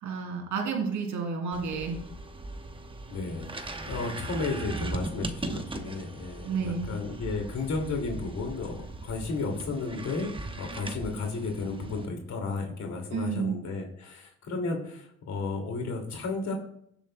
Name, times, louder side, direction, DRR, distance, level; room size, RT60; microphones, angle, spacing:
voice 1, 0.0-2.0 6.4-6.9 13.1-13.6, right 5 dB, 75° right, 1 dB, 2.9 m, -31 dB
sound 1, 1.5-12.1, right 2 dB, 15° right, 0.9 m, -39 dB
voice 2, 3.1-16.5, left 3 dB, 65° left, 2 dB, 2.4 m, -33 dB
16.5 x 7.0 x 2.2 m, 0.69 s
cardioid pair, 90°, 30 cm